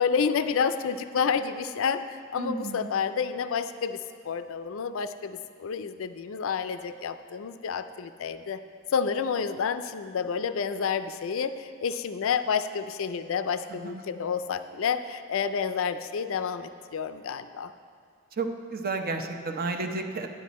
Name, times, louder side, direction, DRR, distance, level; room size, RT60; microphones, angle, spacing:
voice 1, 0.0-4.0 4.2-8.6 8.9-17.7, left 6 dB, 70° left, 11 dB, 0.4 m, -29 dB
voice 2, 2.4-2.9 13.7-14.2 18.3-20.3, right 3 dB, 45° right, 5 dB, 0.8 m, -32 dB
11.0 x 10.5 x 4.2 m, 2.1 s
head